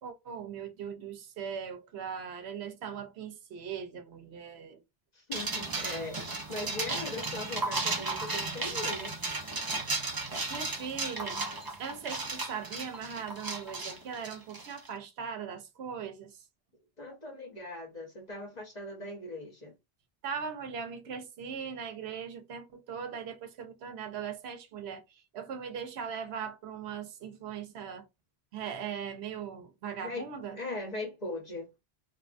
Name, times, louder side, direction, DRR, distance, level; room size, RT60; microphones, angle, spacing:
voice 1, 0.0-4.8 10.5-11.5 11.8-16.4 20.2-28.1 28.5-30.6, right 7 dB, 75° right, 0.9 m, -39 dB
voice 2, 5.1-9.2 17.0-19.7 30.0-31.7, left 2 dB, 40° left, 1.1 m, -40 dB
sound 1, 5.3-14.9, right 3 dB, 30° right, 0.4 m, -35 dB
2.8 x 2.2 x 2.4 m
omnidirectional pair, 1.1 m